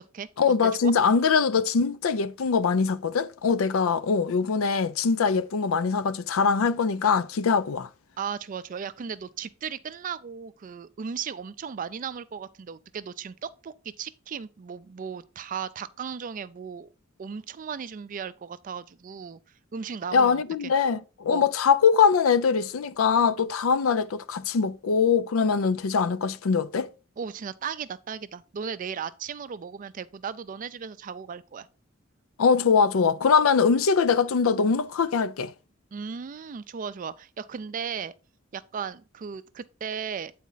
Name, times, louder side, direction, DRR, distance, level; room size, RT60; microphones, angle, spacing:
voice 1, 0.4-7.9 20.1-26.9 32.4-35.5, left 5 dB, 80° left, 0.4 m, -22 dB
voice 2, 8.2-16.9 17.2-19.4 19.7-20.7 21.3-21.5 27.2-31.7 35.9-38.1 38.5-40.3, right 6 dB, 40° right, 0.4 m, -36 dB
8.3 x 4.2 x 3.9 m
head